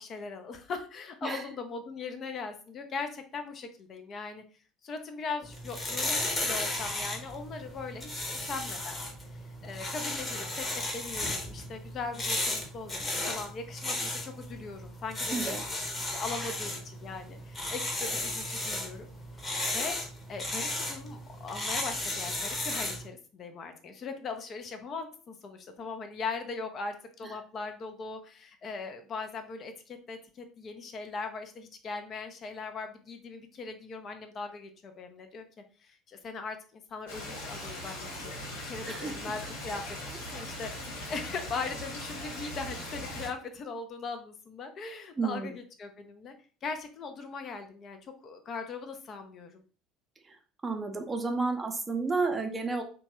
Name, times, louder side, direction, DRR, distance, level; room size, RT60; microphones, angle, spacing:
voice 1, 0.0-4.4 4.8-19.1 19.4-20.0 20.3-35.4 35.8-38.3 38.6-39.8 40.3-46.3 46.6-49.6, left 4 dB, 40° left, 6 dB, 0.4 m, -40 dB
sound 1, 5.4-23.1, left 1 dB, 20° left, 0.8 m, -34 dB
voice 2, 15.3-15.6 16.4-16.5 38.9-39.2 45.2-45.5 50.3-50.4 50.6-52.8, right 4 dB, 20° right, 5 dB, 0.5 m, -31 dB
Stream, 37.1-43.3, left 1 dB, 75° left, 1.0 m, -40 dB
2.9 x 2.2 x 2.8 m, 0.39 s
figure-of-eight pair, 65°, 0 cm